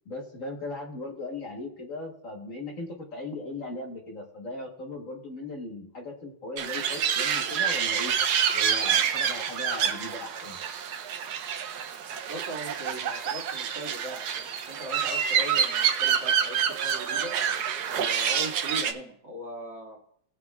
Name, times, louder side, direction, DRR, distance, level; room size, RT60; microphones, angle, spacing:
voice 1, 0.0-8.1 8.5-10.6, left 2 dB, 45° left, 1 dB, 1.4 m, -38 dB
sound 1, 6.6-18.9, right 8 dB, 65° right, 1.0 m, -27 dB
voice 2, 12.3-17.3 17.9-20.0, right 1 dB, 50° right, -2 dB, 2.6 m, -39 dB
19.0 x 7.6 x 2.3 m, 0.68 s
omnidirectional pair, 2.4 m